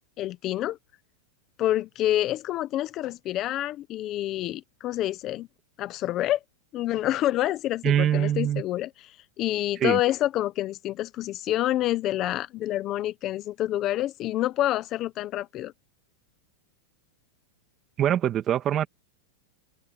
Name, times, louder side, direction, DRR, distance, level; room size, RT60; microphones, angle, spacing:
voice 1, 0.2-0.8 1.6-5.5 5.8-6.4 6.7-8.9 9.4-15.7, left 14 dB, 30° left, 1.0 m, -27 dB
voice 2, 7.8-8.6 9.8-10.0 18.0-18.9, right 10 dB, 25° right, 1.8 m, -23 dB
open air
supercardioid pair, 150°, 0 cm